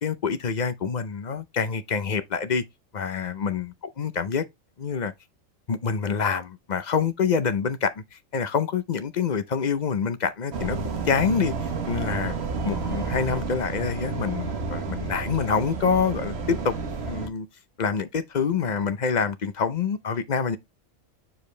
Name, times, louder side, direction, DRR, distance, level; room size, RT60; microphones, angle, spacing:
voice 1, 0.0-2.6 2.9-4.4 4.8-5.1 5.7-10.8 11.1-12.3 12.6-16.8 17.1-17.5 17.8-20.6, left 6 dB, 45° left, 0.6 m, -26 dB
sound 1, 10.5-17.3, right 4 dB, 55° right, 1.3 m, -31 dB
7.1 x 5.0 x 3.2 m
omnidirectional pair, 1.4 m